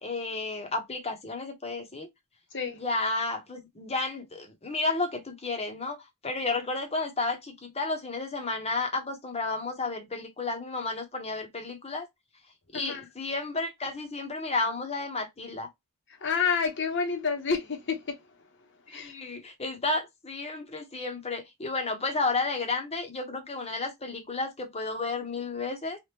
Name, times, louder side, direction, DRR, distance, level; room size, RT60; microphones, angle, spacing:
voice 1, 0.0-2.1 2.7-6.0 6.2-12.1 12.7-15.7 18.9-26.0, left 3 dB, 30° left, 1.0 m, -32 dB
voice 2, 16.2-18.0 18.9-19.1, left 5 dB, 55° left, 1.0 m, -28 dB
3.4 x 2.5 x 2.8 m
head